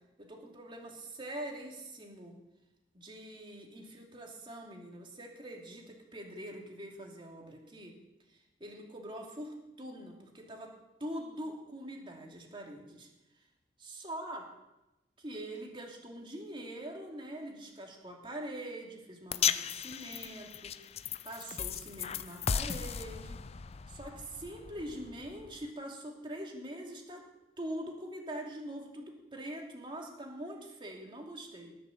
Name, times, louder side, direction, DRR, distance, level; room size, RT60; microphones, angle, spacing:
voice 1, 0.2-2.4 2.9-8.0 8.3-10.7 11.0-13.1 13.8-14.4 15.2-20.7 21.2-23.4 23.9-27.3 27.6-31.7, right 1 dB, 30° right, 0 dB, 2.8 m, -43 dB
sound 1, 19.3-25.7, left 8 dB, 35° left, 0.4 m, -36 dB
19.0 x 6.9 x 7.3 m, 0.98 s
head